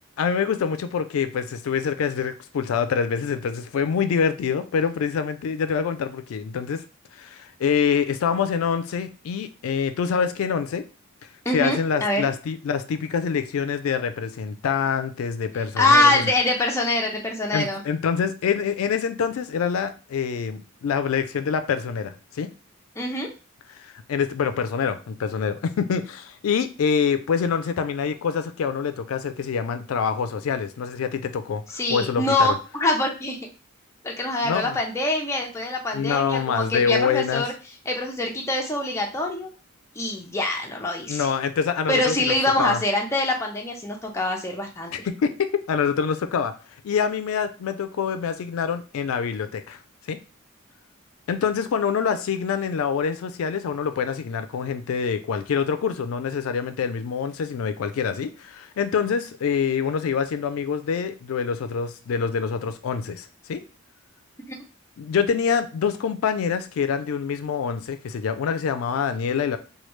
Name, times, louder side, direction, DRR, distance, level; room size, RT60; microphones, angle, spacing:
voice 1, 0.2-6.8 7.2-10.8 11.5-16.2 17.5-22.5 23.8-31.6 31.9-32.6 34.4-34.8 35.9-37.4 41.1-42.8 44.9-46.5 46.8-49.8 50.1-50.2 51.3-63.6 65.0-69.6, left 6 dB, 80° left, 10 dB, 0.3 m, -25 dB
voice 2, 11.5-12.3 15.8-17.8 23.0-23.3 31.7-33.4 34.0-37.5 37.9-39.5 40.0-41.3 41.9-45.1 64.5-64.6, left 2 dB, 15° left, 0 dB, 0.5 m, -24 dB
3.2 x 2.3 x 3.0 m, 0.34 s
head